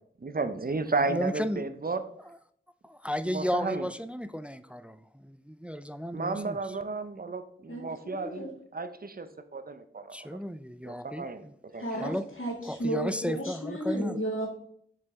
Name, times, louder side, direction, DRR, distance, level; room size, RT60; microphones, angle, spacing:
voice 1, 0.2-2.0 3.3-3.9 6.1-10.2 10.8-11.5 11.7-12.2, right 3 dB, 45° right, 10 dB, 0.6 m, -33 dB
voice 2, 1.1-1.6 2.8-6.6 10.1-11.5 12.0-12.2 12.6-14.2, equal, 5° right, 13 dB, 0.3 m, -33 dB
voice 3, 8.1-8.5 11.8-14.5, equal, 75° left, -2 dB, 2.1 m, -33 dB
7.1 x 5.0 x 3.6 m, 0.64 s
wide cardioid pair, 40°, 21 cm